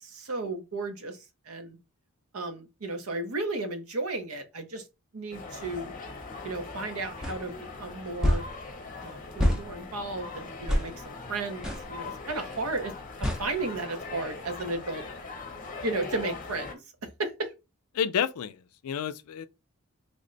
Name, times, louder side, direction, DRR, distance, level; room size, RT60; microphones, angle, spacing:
voice 1, 0.0-1.8 2.3-4.8 5.1-5.9 6.4-8.4 9.0-12.9 13.2-15.0 15.8-17.5, right 2 dB, 80° right, 0.8 m, -34 dB
sound 1, 5.3-16.7, left 3 dB, 35° left, 0.7 m, -41 dB
sound 2, 7.2-7.4 8.2-8.5 9.4-9.6 10.7-10.9 11.6-11.8 13.2-13.4, equal, 5° right, 0.6 m, -25 dB
voice 2, 17.9-19.5, left 8 dB, 85° left, 0.4 m, -30 dB
3.4 x 2.1 x 3.8 m
head